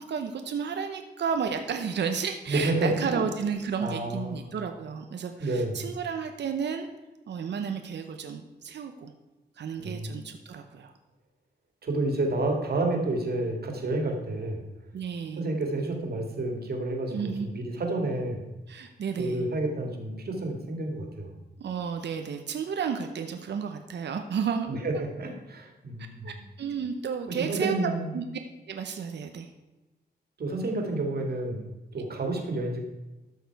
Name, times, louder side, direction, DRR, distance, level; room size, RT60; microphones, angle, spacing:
voice 1, 0.0-6.9 7.3-9.1 9.6-10.9 14.9-15.4 17.1-17.5 18.7-19.5 21.6-25.0 26.2-28.2 28.7-29.5 31.9-32.1, right 6 dB, 80° right, 6 dB, 0.7 m, -32 dB
voice 2, 2.5-3.2 3.8-4.6 5.4-5.9 9.8-10.2 11.8-14.6 15.4-18.5 19.2-21.3 24.7-26.4 27.3-28.1 30.4-32.8, right 2 dB, 60° right, 2 dB, 2.1 m, -30 dB
12.5 x 6.5 x 4.7 m, 1.1 s
wide cardioid pair, 105°, 18 cm